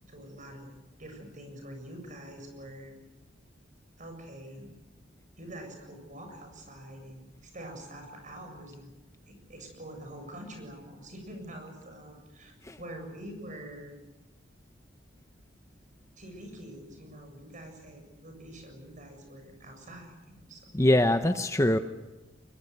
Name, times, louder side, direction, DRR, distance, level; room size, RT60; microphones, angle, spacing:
voice 1, 0.1-0.7 1.0-2.9 4.0-4.7 5.4-9.0 9.3-12.5 12.8-13.9 16.2-20.7 21.0-21.2, right 1 dB, 40° right, 4 dB, 7.4 m, -45 dB
voice 2, 20.7-21.8, left 1 dB, 15° left, 8 dB, 0.9 m, -23 dB
23.0 x 22.0 x 9.4 m, 1.1 s
head